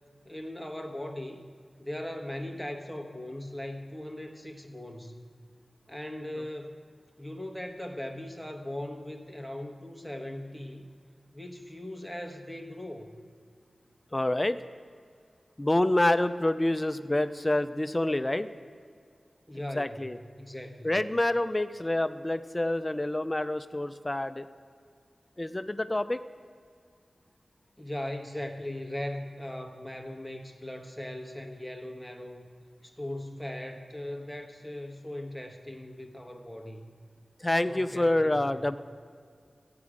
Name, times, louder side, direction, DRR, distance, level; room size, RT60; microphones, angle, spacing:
voice 1, 0.2-1.5 1.8-5.2 5.9-6.8 7.2-10.8 11.3-13.2 19.5-20.1 20.4-21.0 27.8-32.5 32.8-36.9 37.7-38.6, left 1 dB, 5° right, 4 dB, 1.3 m, -39 dB
voice 2, 14.1-14.6 15.6-18.5 19.8-20.2 20.8-24.5 25.4-26.2 37.4-38.8, left 1 dB, 25° left, 12 dB, 0.5 m, -27 dB
14.5 x 9.5 x 5.0 m, 2.2 s
cardioid pair, 55°, 0 cm